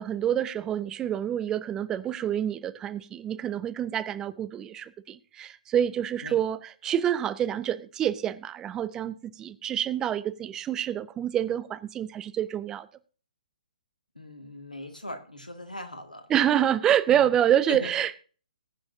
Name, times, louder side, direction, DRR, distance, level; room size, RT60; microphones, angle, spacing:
voice 1, 0.0-12.9 16.3-18.2, right 10 dB, 15° right, 0.5 m, -27 dB
voice 2, 14.2-16.3 17.1-17.3 17.7-17.9, left 1 dB, 85° left, 2.0 m, -39 dB
20.5 x 8.7 x 2.7 m
figure-of-eight pair, 130°, 4 cm